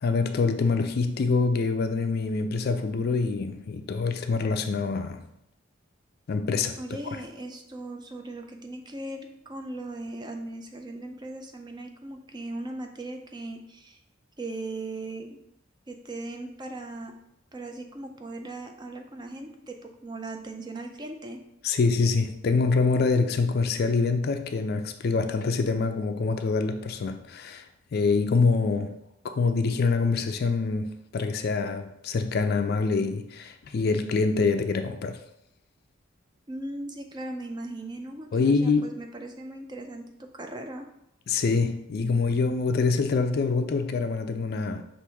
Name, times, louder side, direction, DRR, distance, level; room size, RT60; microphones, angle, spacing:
voice 1, 0.0-5.2 6.3-6.8 21.6-27.7 27.9-29.0 29.2-35.2 38.3-38.9 41.3-44.8, left 4 dB, 50° left, 0.4 m, -25 dB
voice 2, 6.8-14.0 14.4-15.4 15.9-17.1 17.5-21.4 36.5-40.0 40.3-40.9, right 2 dB, 20° right, 0.4 m, -38 dB
6.0 x 2.5 x 3.4 m
head